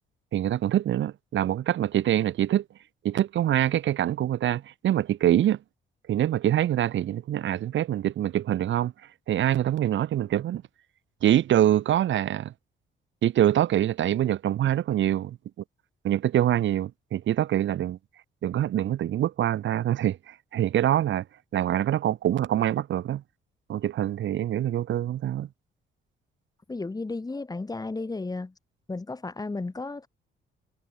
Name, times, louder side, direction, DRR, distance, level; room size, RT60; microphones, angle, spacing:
voice 1, 0.3-2.6 3.0-5.6 6.1-8.9 9.3-10.6 11.2-12.5 13.2-15.4 16.0-18.0 18.4-21.2 21.5-23.2 23.7-25.5, right 12 dB, 70° right, 1.7 m, -25 dB
voice 2, 26.7-28.5 28.9-30.1, left 3 dB, 20° left, 4.4 m, -33 dB
cardioid pair, 115°, 20 cm